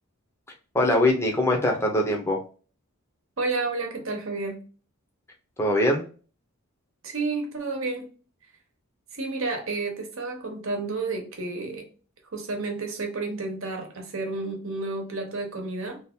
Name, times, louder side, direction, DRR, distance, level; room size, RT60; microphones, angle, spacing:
voice 1, 0.7-2.4 5.6-6.0, left 1 dB, 10° left, 0.7 m, -22 dB
voice 2, 3.4-4.6 7.0-8.1 9.1-11.8 12.3-16.0, right 3 dB, 65° right, 1.0 m, -31 dB
2.8 x 2.4 x 3.5 m
head